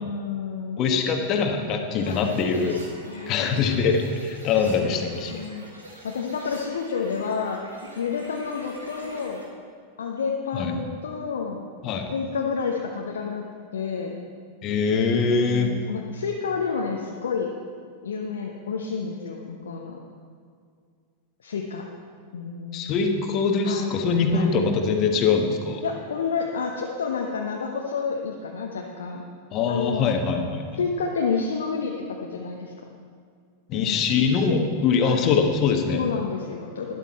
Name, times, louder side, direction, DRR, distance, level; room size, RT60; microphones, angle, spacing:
voice 1, 0.0-0.8 2.1-2.4 3.0-3.8 5.3-5.7 6.0-7.6 8.0-9.4 10.0-11.6 12.1-13.5 13.7-14.2 15.4-17.5 18.0-20.0 21.4-21.8 22.3-22.9 23.7-24.0 24.3-24.5 25.8-29.2 29.7-30.1 30.8-32.7 33.7-34.0 35.0-35.3 35.9-37.0, left 5 dB, 65° left, 0 dB, 0.9 m, -29 dB
voice 2, 0.8-2.8 3.3-5.4 10.5-10.7 11.8-12.1 14.6-15.7 22.7-25.8 29.5-30.8 33.7-36.0, left 5 dB, 35° left, 4 dB, 1.4 m, -23 dB
sound 1, 2.0-9.4, right 1 dB, 80° right, 2.0 m, -45 dB
12.5 x 11.0 x 4.2 m, 2.2 s
figure-of-eight pair, 90°, 0 cm